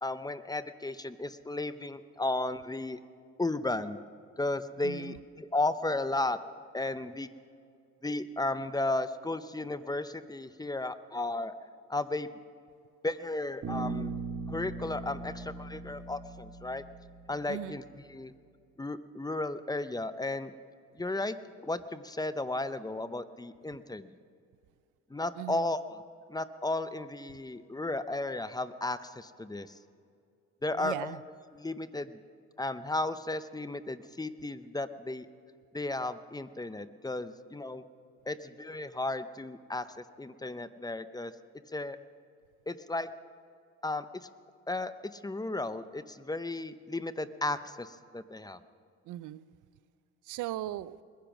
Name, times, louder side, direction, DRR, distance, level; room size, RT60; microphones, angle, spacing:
voice 1, 0.0-3.0 3.4-4.0 4.4-6.4 6.7-7.3 8.0-11.5 11.9-12.3 13.0-14.1 14.5-16.8 17.3-18.3 18.8-20.5 21.0-24.1 25.1-26.0 26.3-29.8 30.6-31.2 31.5-32.2 32.6-35.3 35.7-37.8 38.3-39.9 40.2-41.3 41.7-42.0 42.7-43.1 43.8-44.0 44.7-48.6, left 2 dB, 15° left, 12 dB, 0.7 m, -34 dB
voice 2, 4.8-5.2 17.5-17.8 25.4-25.7 30.8-31.2 49.1-49.4 50.2-51.0, right 14 dB, 80° right, 18 dB, 0.5 m, -38 dB
Bass guitar, 13.6-17.7, right 3 dB, 50° right, 2.6 m, -39 dB
21.5 x 10.5 x 6.0 m, 2.3 s
cardioid pair, 90°, 30 cm